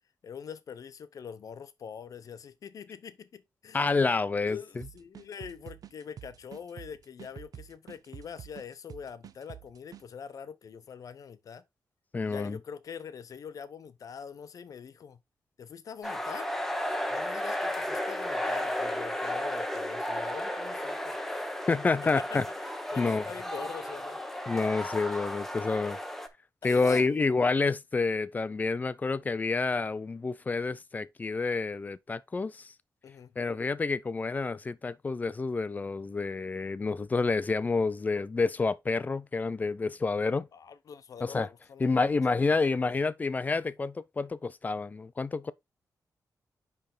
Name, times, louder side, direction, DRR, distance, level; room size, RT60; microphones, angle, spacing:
voice 1, 0.2-4.2 4.4-11.6 12.2-15.2 15.6-16.5 17.1-21.2 22.1-24.2 26.6-27.3 33.0-33.4 40.5-43.0, left 7 dB, 55° left, 0.7 m, -44 dB
voice 2, 3.7-4.6 12.1-12.6 21.7-22.4 23.0-23.2 24.5-26.0 26.6-32.7 33.4-40.5 41.2-41.5 41.8-45.5, left 4 dB, 25° left, 0.4 m, -28 dB
sound 1, 4.8-10.0, right 9 dB, 60° right, 0.5 m, -47 dB
sound 2, 16.0-26.3, left 1 dB, 5° left, 0.8 m, -34 dB
10.0 x 3.4 x 3.8 m
wide cardioid pair, 165°, 7 cm